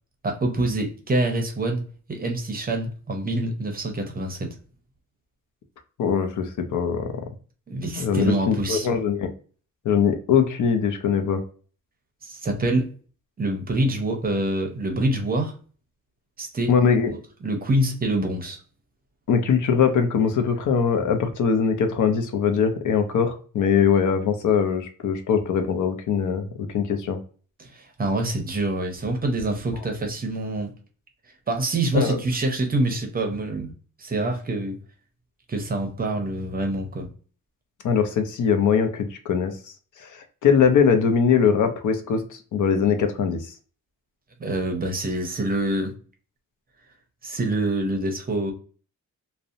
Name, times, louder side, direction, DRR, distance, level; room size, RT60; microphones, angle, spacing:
voice 1, 0.2-1.8 2.1-4.5 7.7-8.9 12.2-12.9 13.4-15.5 16.4-16.7 17.4-18.6 27.6-30.7 31.5-33.7 34.0-34.8 35.5-37.1 44.4-45.9 47.2-48.5, right 1 dB, 25° right, 3 dB, 0.6 m, -26 dB
voice 2, 6.0-7.1 8.0-9.3 9.8-11.4 16.7-17.1 19.3-27.2 31.9-32.2 37.8-39.5 40.0-43.5, left 6 dB, 65° left, 6 dB, 0.5 m, -21 dB
2.7 x 2.0 x 2.4 m, 0.41 s
cardioid pair, 125°, 34 cm